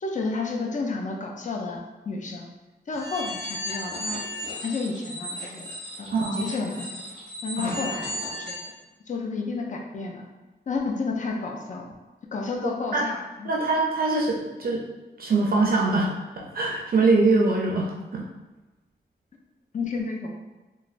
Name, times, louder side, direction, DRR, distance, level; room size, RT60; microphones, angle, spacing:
voice 1, 0.0-2.5 2.9-4.2 4.6-5.7 6.0-7.0 7.4-8.7 9.1-10.3 10.7-11.9 12.3-13.5 19.7-20.4, left 4 dB, 45° left, 1 dB, 0.4 m, -31 dB
sound 1, 2.9-8.7, equal, 60° left, 1.2 m, -35 dB
voice 2, 6.1-6.5 7.6-7.8 12.9-13.0 13.4-14.8 15.2-16.1 16.4-18.2, right 3 dB, 55° right, -2 dB, 0.4 m, -23 dB
3.1 x 2.2 x 2.4 m, 1.1 s
wide cardioid pair, 140°, 18 cm